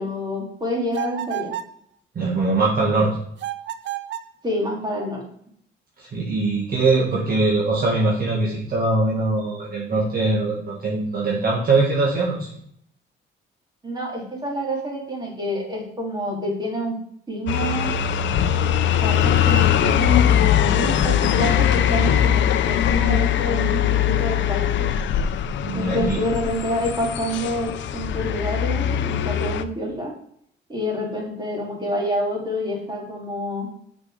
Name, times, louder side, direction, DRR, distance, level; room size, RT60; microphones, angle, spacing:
voice 1, 0.0-1.5 4.4-5.2 13.8-17.0 17.3-17.9 19.0-24.9 25.7-30.1 30.7-33.7, equal, 20° right, -3 dB, 3.2 m, -27 dB
sound 1, 0.9-1.8 3.4-4.4, right 13 dB, 65° right, 0.5 m, -31 dB
voice 2, 2.2-3.1 6.0-12.6 25.6-26.2, right 3 dB, 50° right, -4 dB, 1.8 m, -22 dB
sound 2, 17.5-29.6, left 10 dB, 70° left, 0.6 m, -21 dB
6.6 x 5.2 x 5.0 m, 0.68 s
cardioid pair, 90°, 20 cm